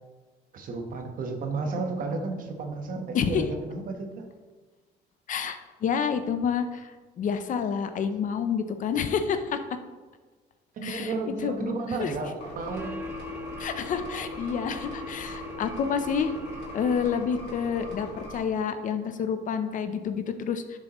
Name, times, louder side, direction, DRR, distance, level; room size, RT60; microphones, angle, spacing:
voice 1, 0.5-4.3 10.7-13.0, right 3 dB, 55° right, 4 dB, 1.3 m, -32 dB
voice 2, 5.3-9.7 10.8-11.1 11.4-12.2 13.6-20.8, left 6 dB, 50° left, 9 dB, 0.7 m, -29 dB
sound 1, 12.4-18.4, left 1 dB, 85° left, 2.0 m, -41 dB
sound 2, 12.7-17.5, left 2 dB, 10° right, 0.7 m, -41 dB
11.0 x 6.8 x 3.1 m, 1.3 s
cardioid pair, 110°, 17 cm